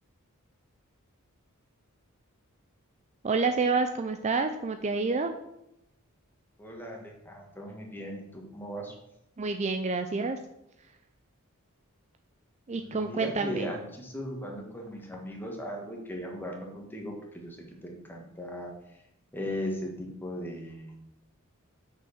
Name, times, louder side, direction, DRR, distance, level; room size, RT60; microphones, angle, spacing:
voice 1, 3.2-5.3 9.4-10.4 12.7-13.7, right 4 dB, 30° right, 7 dB, 0.4 m, -28 dB
voice 2, 6.6-8.9 12.7-19.0 19.3-21.0, equal, 10° left, 0 dB, 1.6 m, -38 dB
6.3 x 5.5 x 6.4 m, 0.84 s
head